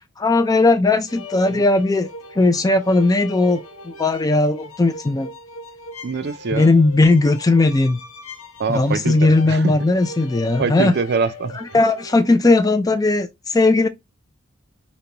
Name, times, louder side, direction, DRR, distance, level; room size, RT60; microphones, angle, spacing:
voice 1, 0.2-5.3 6.5-8.0 8.7-11.0 11.6-13.9, left 2 dB, 15° left, 0.3 m, -17 dB
sound 1, 1.1-12.4, left 2 dB, 80° left, 0.9 m, -39 dB
voice 2, 6.0-6.7 8.6-9.9 10.6-11.6, right 4 dB, 50° right, 0.4 m, -24 dB
5.2 x 2.2 x 2.9 m
head